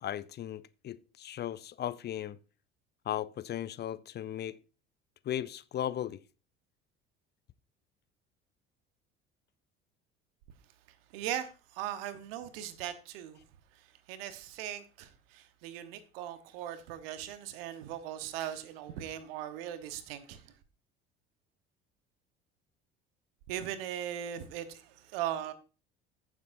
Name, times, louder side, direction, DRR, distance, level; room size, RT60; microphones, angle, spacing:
voice 1, 0.0-2.4 3.1-4.6 5.3-6.2, left 11 dB, 35° left, 0.5 m, -36 dB
voice 2, 11.1-13.4 14.1-20.4 23.5-25.5, right 11 dB, 65° right, 1.2 m, -39 dB
14.5 x 7.3 x 2.6 m
figure-of-eight pair, 60°, 31 cm